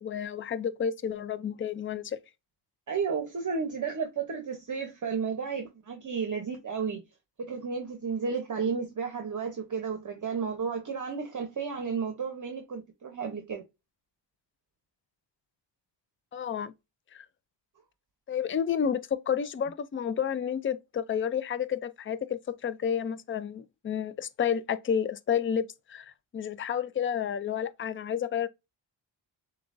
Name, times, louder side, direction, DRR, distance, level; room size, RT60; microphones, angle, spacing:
voice 1, 0.0-2.2 16.3-16.7 17.1-17.3 18.3-28.5, left 8 dB, 30° left, 0.4 m, -30 dB
voice 2, 2.9-7.0 7.5-13.6, right 5 dB, 40° right, 0.9 m, -32 dB
6.8 x 2.4 x 2.5 m
cardioid pair, 85°, 46 cm